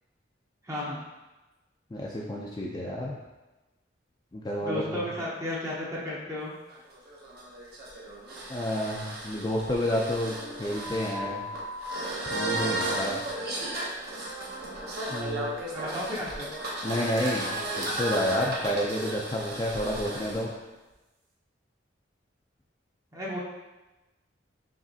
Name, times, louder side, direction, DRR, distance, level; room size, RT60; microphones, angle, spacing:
voice 1, 0.6-1.0 4.6-6.5 15.7-16.5 23.1-23.4, left 1 dB, 15° right, -6 dB, 0.6 m, -33 dB
voice 2, 1.9-3.2 4.3-5.1 8.5-11.4 12.3-13.2 15.1-15.6 16.8-20.5, left 1 dB, 20° left, -3 dB, 0.4 m, -30 dB
sound 1, 6.7-20.4, right 1 dB, 55° right, 0.8 m, -34 dB
5.0 x 3.1 x 2.7 m, 1.1 s
head